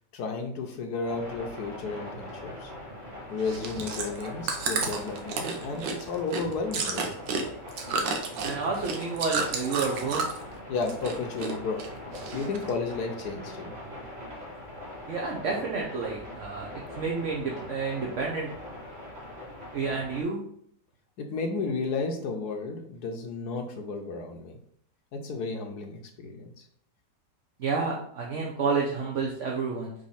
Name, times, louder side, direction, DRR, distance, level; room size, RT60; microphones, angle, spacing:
voice 1, 0.1-2.7 3.3-7.4 10.7-11.9 12.3-13.8 21.2-24.6 25.1-26.5, left 4 dB, 65° left, 4 dB, 1.3 m, -33 dB
sound 1, 1.0-20.2, left 1 dB, 35° right, 2.5 m, -42 dB
Chewing mastication, 3.4-10.5 10.8-11.5 11.8-12.7 13.2-13.3, right 4 dB, 90° right, 1.6 m, -31 dB
voice 2, 8.4-10.2 15.1-18.5 19.7-20.4 27.6-29.9, right 4 dB, 50° right, -2 dB, 1.0 m, -30 dB
5.2 x 3.3 x 5.6 m, 0.65 s
omnidirectional pair, 1.9 m